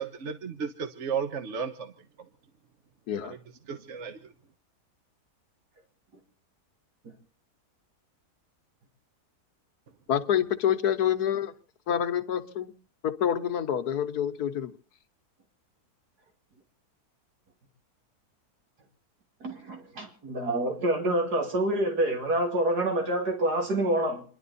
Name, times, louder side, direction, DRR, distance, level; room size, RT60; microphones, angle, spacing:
voice 1, 0.0-1.9 3.2-3.4 3.7-4.1, right 6 dB, 50° right, 1.4 m, -33 dB
voice 2, 10.1-11.5 11.9-12.7 13.0-14.7, left 9 dB, 75° left, 1.6 m, -27 dB
voice 3, 19.4-24.2, right 1 dB, 80° right, 3.1 m, -27 dB
29.0 x 11.5 x 4.1 m
omnidirectional pair, 1.7 m